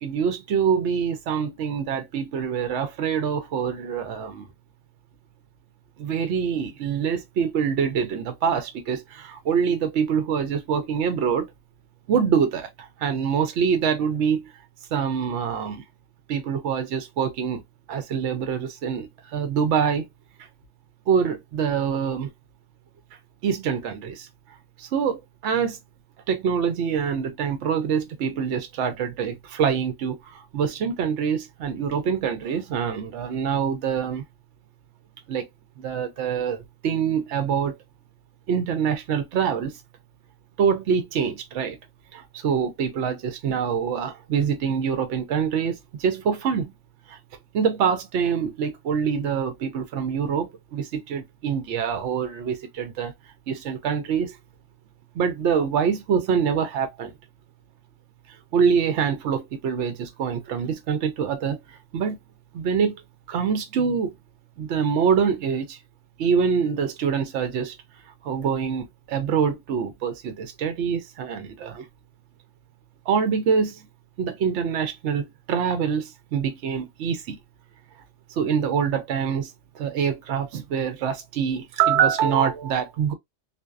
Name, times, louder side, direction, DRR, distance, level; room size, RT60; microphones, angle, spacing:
voice 1, 0.0-4.5 6.0-11.5 12.1-14.4 14.9-15.8 16.3-17.6 17.9-20.1 21.1-22.3 23.4-24.3 24.8-25.8 26.3-34.2 35.3-35.5 35.8-37.7 38.5-39.7 40.6-41.8 42.1-46.7 47.1-47.2 47.5-53.1 53.5-54.3 55.2-57.1 58.5-61.6 61.9-62.2 62.5-62.9 63.3-64.1 64.6-65.8 66.2-67.7 68.2-71.8 73.1-73.8 74.2-77.4 78.4-79.5 79.8-83.1, right 7 dB, 75° right, 0.9 m, -25 dB
2.6 x 2.2 x 2.2 m
omnidirectional pair, 1.2 m